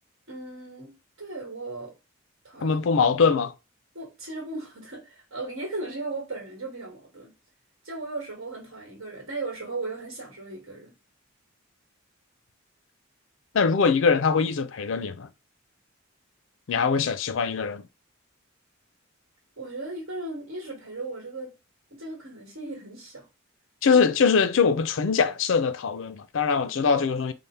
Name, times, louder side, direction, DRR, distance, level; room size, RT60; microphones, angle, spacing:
voice 1, 0.3-1.9 2.4-2.8 3.9-7.3 7.8-10.9 16.7-16.9 19.6-21.5 21.9-23.2 23.9-24.0, right 2 dB, 75° right, 1.3 m, -37 dB
voice 2, 2.6-3.5 13.5-15.3 16.7-17.8 23.8-27.3, left 5 dB, 65° left, 0.4 m, -22 dB
3.3 x 2.1 x 4.1 m
head